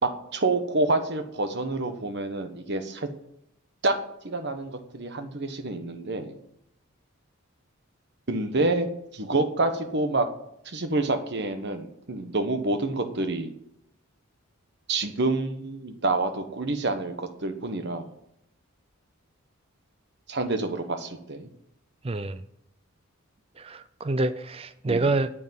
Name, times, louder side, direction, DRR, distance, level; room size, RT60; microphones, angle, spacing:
voice 1, 0.0-3.1 3.8-4.0 4.2-6.3 8.3-8.9 9.1-10.3 10.6-13.5 14.9-18.1 20.3-21.5 24.9-25.1, right 2 dB, 50° right, 7 dB, 1.3 m, -27 dB
voice 2, 22.0-22.4 23.6-25.3, right 2 dB, 25° right, 11 dB, 0.4 m, -27 dB
9.3 x 8.5 x 7.6 m, 0.77 s
head